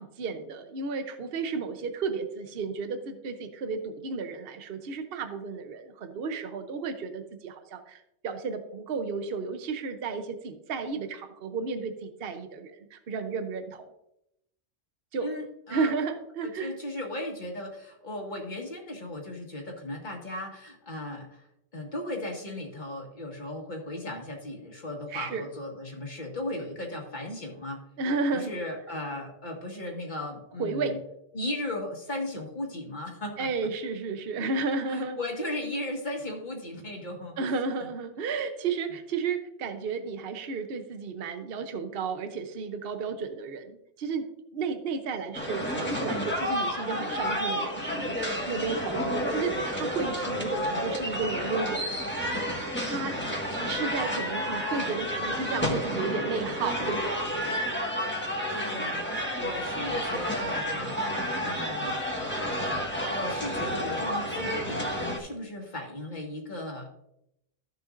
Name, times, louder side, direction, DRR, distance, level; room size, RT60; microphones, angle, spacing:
voice 1, 0.0-13.8 15.1-15.3 15.7-16.7 25.1-25.4 28.0-28.5 30.6-31.0 33.4-35.2 37.4-44.3 44.5-52.0 52.5-53.2 53.5-57.7, right 4 dB, 60° right, 8 dB, 1.0 m, -33 dB
voice 2, 15.2-15.9 16.4-21.4 21.7-27.8 28.3-31.0 31.3-33.5 34.9-37.6 37.8-37.9 58.5-59.0 59.3-62.0 63.0-67.0, left 1 dB, 45° left, 0 dB, 1.9 m, -36 dB
sound 1, 45.3-65.2, equal, 10° left, 1.5 m, -30 dB
14.0 x 6.8 x 2.5 m, 0.81 s
omnidirectional pair, 1.1 m